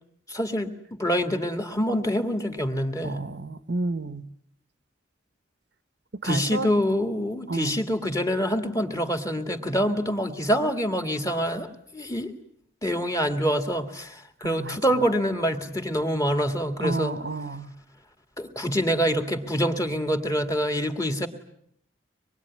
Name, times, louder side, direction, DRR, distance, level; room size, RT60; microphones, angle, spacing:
voice 1, 0.3-3.2 6.2-12.3 12.8-17.2 18.4-21.3, equal, 15° left, 7 dB, 2.1 m, -26 dB
voice 2, 3.0-4.3 6.1-6.7 7.5-7.8 14.4-14.8 16.8-17.7, right 3 dB, 60° right, 13 dB, 1.0 m, -30 dB
25.0 x 22.5 x 9.7 m, 0.72 s
head